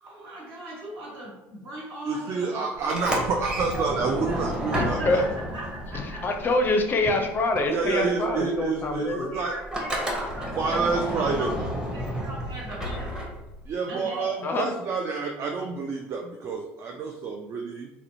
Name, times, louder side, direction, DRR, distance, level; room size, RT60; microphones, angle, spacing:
voice 1, 0.0-2.9 3.3-4.4 4.7-6.2 9.0-11.6 11.9-13.3 13.9-14.3, right 1 dB, 65° right, -5 dB, 1.4 m, -38 dB
voice 2, 2.0-5.2 7.7-9.5 10.5-11.7 13.7-17.9, right 4 dB, 45° right, 1 dB, 0.3 m, -28 dB
Sliding door, 2.8-7.1 7.3-13.7, equal, 10° right, 0.7 m, -32 dB
voice 3, 4.8-5.2 5.9-9.3 14.4-14.7, left 2 dB, 35° left, 4 dB, 0.4 m, -25 dB
2.8 x 2.0 x 2.6 m, 0.96 s
supercardioid pair, 85°, 6 cm